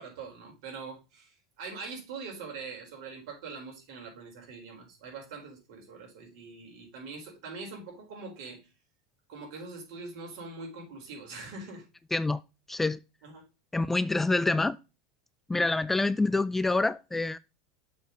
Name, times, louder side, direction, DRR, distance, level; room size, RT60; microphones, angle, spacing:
voice 1, 0.0-8.6 9.3-11.9 13.2-13.4 15.5-15.8, right 4 dB, 65° right, 4.3 m, -43 dB
voice 2, 12.7-13.0 13.7-14.8 15.5-17.4, left 2 dB, 10° left, 0.3 m, -26 dB
6.8 x 4.5 x 5.1 m
supercardioid pair, 110°, 3 cm